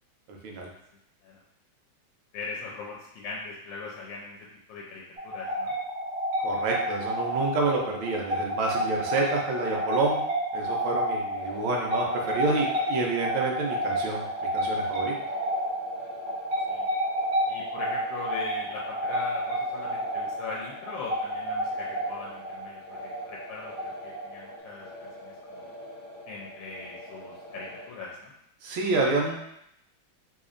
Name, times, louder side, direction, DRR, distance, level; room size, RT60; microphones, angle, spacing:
voice 1, 0.3-0.7 6.4-10.2 10.5-14.2 14.5-15.1 28.6-29.5, right 3 dB, 90° right, -1 dB, 1.5 m, -28 dB
voice 2, 2.3-5.7 16.7-16.9 17.5-25.7 26.3-28.3, left 3 dB, 80° left, -3 dB, 1.3 m, -40 dB
sound 1, 5.2-24.5, equal, 75° right, 1.7 m, -30 dB
sound 2, 11.3-27.9, equal, 60° left, 1.1 m, -45 dB
4.1 x 2.8 x 2.4 m, 0.77 s
omnidirectional pair, 2.2 m